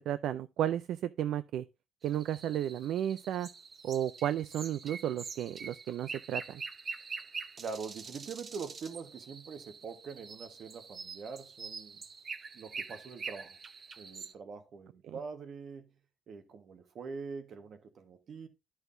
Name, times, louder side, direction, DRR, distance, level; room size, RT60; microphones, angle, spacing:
voice 1, 0.0-1.6 2.0-3.5 3.8-6.6 15.1-15.2, right 11 dB, 80° right, 0.3 m, -33 dB
sound 1, 2.0-14.3, right 5 dB, 45° right, 0.7 m, -45 dB
voice 2, 7.6-12.0 12.5-13.6 14.0-15.9 16.3-18.5, right 5 dB, 60° right, 1.3 m, -44 dB
11.0 x 6.2 x 2.6 m
cardioid pair, 90°, 0 cm